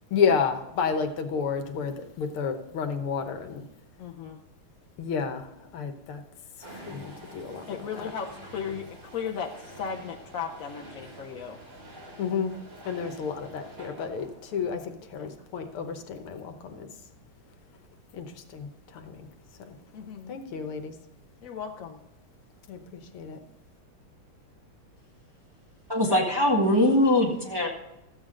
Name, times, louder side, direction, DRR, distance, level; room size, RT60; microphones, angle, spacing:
voice 1, 0.1-3.7 5.0-6.2 6.6-8.1 12.2-12.5 12.9-16.9 18.1-19.3 19.6-19.8 20.3-21.0 22.7-23.4, left 6 dB, 80° left, 6 dB, 1.9 m, -31 dB
voice 2, 4.0-4.4 7.7-11.6 15.2-15.3 19.9-20.4 21.4-22.0, left 6 dB, 65° left, 1 dB, 0.8 m, -36 dB
sound 1, 6.6-14.8, right 1 dB, 65° right, 4.1 m, -47 dB
voice 3, 25.9-27.7, left 1 dB, 15° right, -2 dB, 1.3 m, -22 dB
13.5 x 8.2 x 3.8 m, 0.92 s
omnidirectional pair, 2.4 m